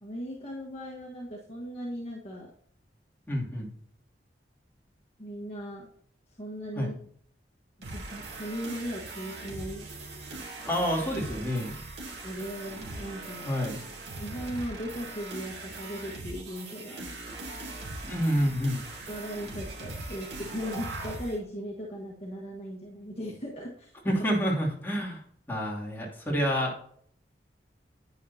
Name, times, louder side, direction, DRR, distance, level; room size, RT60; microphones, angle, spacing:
voice 1, 0.0-2.5 5.2-5.9 6.4-6.9 7.9-9.9 12.2-13.5 14.2-17.3 19.1-23.9, equal, 35° left, -3 dB, 1.5 m, -38 dB
voice 2, 3.3-3.7 6.8-6.9 10.7-11.7 13.4-13.8 18.0-18.8 24.0-25.2 25.5-26.8, equal, 10° left, -4 dB, 2.8 m, -28 dB
sound 1, 7.8-21.4, right 2 dB, 70° right, 2.9 m, -40 dB
10.5 x 9.4 x 2.8 m, 0.62 s
head